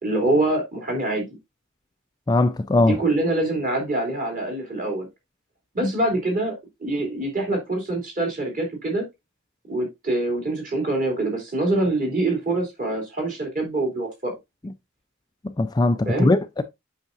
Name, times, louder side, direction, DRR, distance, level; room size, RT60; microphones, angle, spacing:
voice 1, 0.0-1.3 2.8-5.1 5.7-6.5 6.8-9.0 9.7-14.3 16.0-16.3, right 2 dB, 40° right, 3.2 m, -25 dB
voice 2, 2.3-2.9 5.8-5.9 15.6-16.6, left 2 dB, 20° left, 0.3 m, -20 dB
8.2 x 5.7 x 2.6 m
head